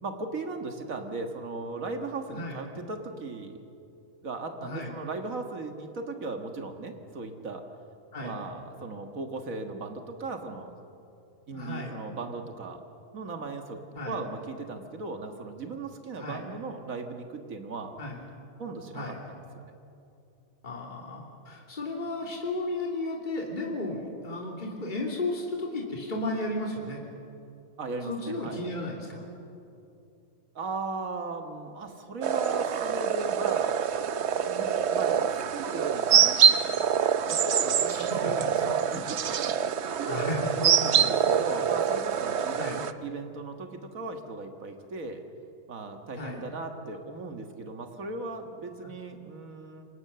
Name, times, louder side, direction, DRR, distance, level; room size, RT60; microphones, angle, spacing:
voice 1, 0.0-3.6 4.2-7.7 8.2-10.7 11.5-12.8 13.1-13.8 14.0-17.9 18.6-19.7 27.8-28.6 30.6-33.7 34.5-36.9 37.3-45.2 45.7-49.8, right 3 dB, 85° right, 5 dB, 2.1 m, -37 dB
voice 2, 4.6-4.9 8.1-8.3 11.5-11.9 13.9-14.2 16.2-16.4 18.0-18.2 18.9-19.2 20.6-27.0 28.1-29.2 37.9-38.4 40.0-40.6 42.6-42.8 46.2-46.4, left 2 dB, 35° left, -2 dB, 3.1 m, -34 dB
sound 1, 32.2-42.9, right 8 dB, 60° right, 1.0 m, -25 dB
28.0 x 25.5 x 6.8 m, 2.7 s
omnidirectional pair, 1.4 m